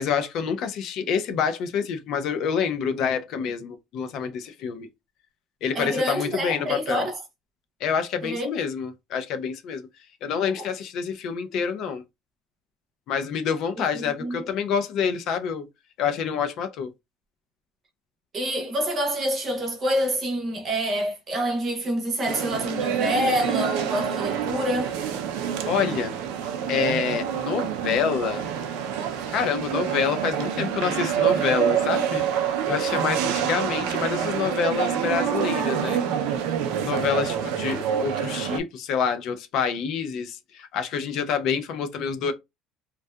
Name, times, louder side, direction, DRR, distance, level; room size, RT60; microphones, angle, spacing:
voice 1, 0.0-4.9 5.6-7.1 7.8-9.9 10.2-12.0 13.1-15.6 16.0-16.9 25.7-26.2 26.7-28.5 29.3-32.3 32.7-36.0 36.8-42.3, left 7 dB, 45° left, 0.4 m, -27 dB
voice 2, 5.7-7.2 8.2-8.5 10.4-10.7 14.2-14.5 18.3-24.9, equal, 25° right, 0.7 m, -27 dB
sound 1, 22.3-38.6, right 8 dB, 70° right, 0.4 m, -27 dB
2.6 x 2.2 x 2.3 m
cardioid pair, 180°, 0 cm